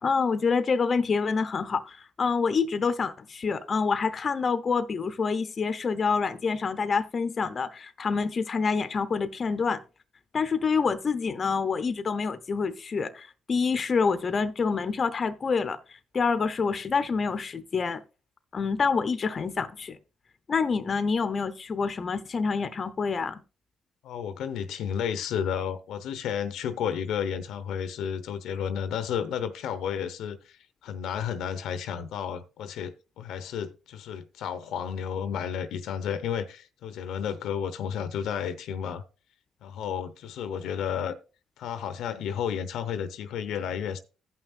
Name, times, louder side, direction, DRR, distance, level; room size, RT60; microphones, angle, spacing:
voice 1, 0.0-9.8 10.3-18.0 18.5-20.0 20.5-23.4, left 5 dB, 40° left, 0.7 m, -27 dB
voice 2, 24.0-39.0 39.6-41.1 41.6-44.0, left 8 dB, 80° left, 0.8 m, -32 dB
16.0 x 5.7 x 2.6 m
cardioid pair, 90°, 0 cm